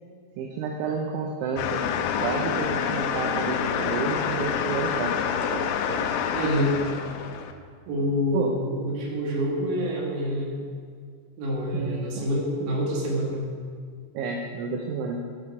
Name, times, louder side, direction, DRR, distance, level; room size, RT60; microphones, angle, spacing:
voice 1, 0.4-1.8 2.2-5.2 5.5-6.1 8.3-8.5 11.7-12.3 14.1-15.2, right 5 dB, 80° right, 1 dB, 2.9 m, -30 dB
sound 1, 1.6-7.5, left 7 dB, 90° left, 2.6 m, -27 dB
voice 2, 6.3-6.8 7.9-10.6 11.4-13.5, equal, 55° right, -3 dB, 2.8 m, -27 dB
10.5 x 6.6 x 4.9 m, 2.1 s
omnidirectional pair, 5.9 m